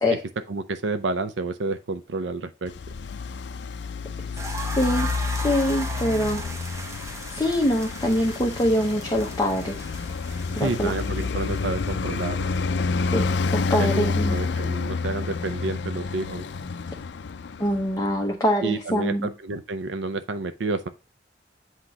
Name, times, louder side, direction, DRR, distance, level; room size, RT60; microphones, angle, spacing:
voice 1, 0.5-2.7 10.6-12.6 13.8-16.5 18.6-20.9, right 3 dB, 90° right, 0.6 m, -30 dB
Traffic noise roadway noise, 2.7-18.1, left 4 dB, 70° left, 0.4 m, -29 dB
sound 1, 4.4-13.1, right 2 dB, 15° right, 0.9 m, -38 dB
voice 2, 4.8-5.1 5.3-6.4 7.3-9.7 10.5-10.9 13.1-14.4 17.6-19.3, left 1 dB, 20° left, 0.9 m, -24 dB
8.1 x 3.0 x 4.9 m
head